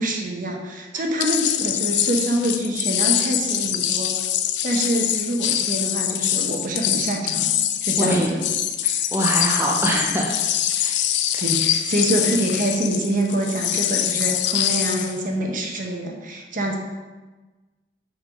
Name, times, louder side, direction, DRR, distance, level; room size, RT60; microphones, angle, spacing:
voice 1, 0.0-4.1 4.6-7.5 7.8-8.4 11.4-16.8, right 1 dB, 45° right, 1 dB, 0.9 m, -25 dB
sound 1, 1.2-15.2, left 11 dB, 70° left, 0.4 m, -24 dB
voice 2, 8.0-8.3 8.8-10.3 10.8-11.0 11.3-11.4, right 1 dB, 15° right, -2 dB, 0.5 m, -24 dB
6.0 x 3.7 x 5.2 m, 1.2 s
head